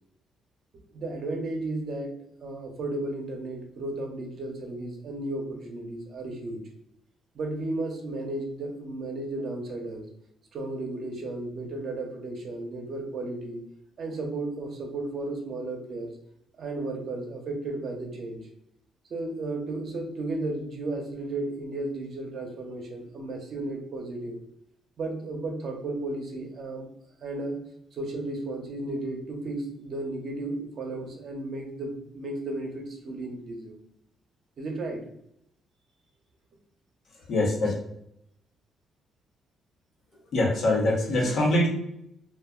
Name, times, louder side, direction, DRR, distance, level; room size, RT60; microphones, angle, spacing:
voice 1, 0.9-2.1 2.4-6.6 7.3-10.1 10.5-13.6 14.0-16.1 16.6-18.5 19.1-24.4 25.0-26.9 27.2-27.6 27.9-33.8 34.6-35.0, right 2 dB, 55° right, 2 dB, 0.8 m, -34 dB
voice 2, 37.3-37.7 40.3-41.7, left 1 dB, 60° left, 0 dB, 0.9 m, -23 dB
2.4 x 2.2 x 3.6 m, 0.75 s
cardioid pair, 90°, 0 cm